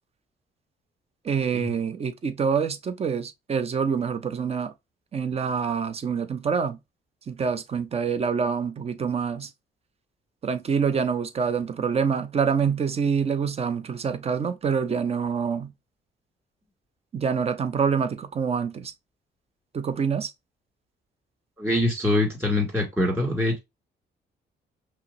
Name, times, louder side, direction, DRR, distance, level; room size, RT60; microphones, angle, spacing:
voice 1, 1.2-4.7 5.1-6.8 7.3-9.5 10.4-15.7 17.1-18.9 19.7-20.3, right 6 dB, 35° right, 0.6 m, -26 dB
voice 2, 21.6-23.6, left 1 dB, 10° right, 2.4 m, -24 dB
5.5 x 2.0 x 2.6 m
cardioid pair, 125°, 19 cm